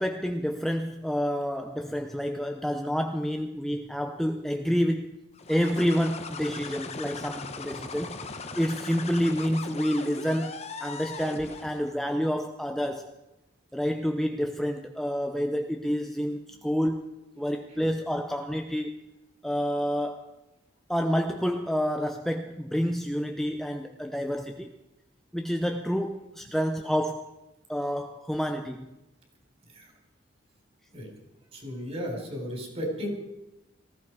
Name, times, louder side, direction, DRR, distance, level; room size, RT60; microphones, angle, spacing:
voice 1, 0.0-5.2 5.5-13.1 13.7-17.0 17.4-19.0 19.4-20.3 20.9-24.7 25.3-27.4 27.7-28.9, equal, ahead, 5 dB, 0.6 m, -29 dB
sound 1, 5.4-11.9, left 4 dB, 35° left, 1.0 m, -39 dB
voice 2, 31.5-33.1, equal, 30° right, 1 dB, 4.3 m, -34 dB
19.0 x 15.0 x 4.7 m, 0.98 s
head